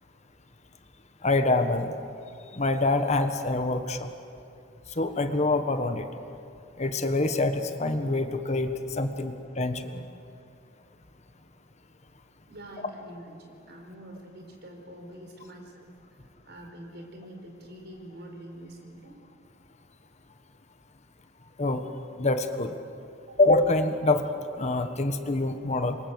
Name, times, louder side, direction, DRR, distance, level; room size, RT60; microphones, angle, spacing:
voice 1, 1.2-1.9 2.5-4.1 5.0-6.1 6.8-10.0 21.6-21.8 22.2-22.7 23.4-24.2 24.6-26.0, left 2 dB, 35° left, 8 dB, 1.4 m, -25 dB
voice 2, 12.5-15.9 16.2-19.1 23.2-23.4, right 1 dB, 60° right, 2 dB, 5.1 m, -45 dB
28.5 x 24.0 x 8.0 m, 2.6 s
head